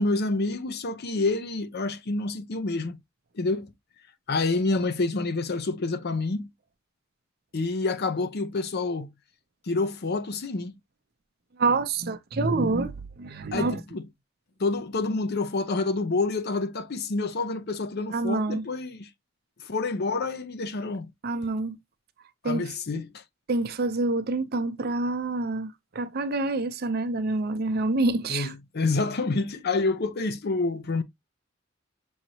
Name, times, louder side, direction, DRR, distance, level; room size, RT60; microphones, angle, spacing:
voice 1, 0.0-3.0 3.3-3.7 4.3-6.5 7.5-9.1 9.7-10.8 13.5-14.0 14.6-19.1 19.6-21.1 22.4-23.2 28.3-31.0, left 3 dB, 55° left, 0.6 m, -28 dB
voice 2, 11.6-13.8 18.1-18.6 21.2-21.8 22.4-22.7 23.5-28.5, right 3 dB, 50° right, 0.6 m, -27 dB
6.3 x 2.9 x 2.7 m
head